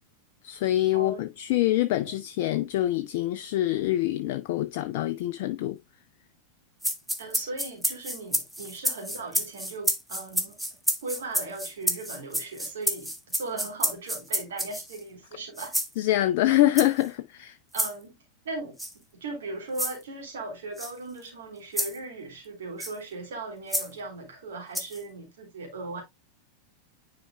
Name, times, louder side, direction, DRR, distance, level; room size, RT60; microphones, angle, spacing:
voice 1, 0.4-5.8 16.0-17.6, left 15 dB, 50° left, 0.4 m, -25 dB
sound 1, 6.8-15.0 15.6-15.9 16.7-17.1 17.7-17.9 18.8-18.9 19.7-20.0 20.8-20.9 21.8-22.0 22.8-23.0 23.7-23.9 24.7-25.0, equal, 5° right, 0.9 m, -29 dB
voice 2, 7.2-10.6 11.0-15.7 17.7-18.2 18.4-26.0, right 3 dB, 60° right, 3.3 m, -38 dB
9.9 x 4.7 x 2.2 m
figure-of-eight pair, 90°, 0 cm